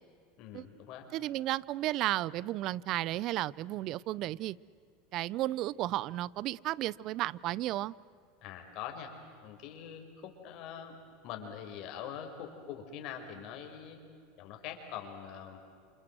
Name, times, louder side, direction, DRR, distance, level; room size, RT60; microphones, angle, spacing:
voice 1, 0.4-1.1 8.4-9.1 9.4-11.0 11.2-14.0 14.4-15.6, left 8 dB, 55° left, 4 dB, 5.4 m, -43 dB
voice 2, 1.1-4.6 5.1-7.9, right 15 dB, 50° right, 23 dB, 0.6 m, -33 dB
28.0 x 27.5 x 7.8 m, 2.3 s
hypercardioid pair, 100°, 0 cm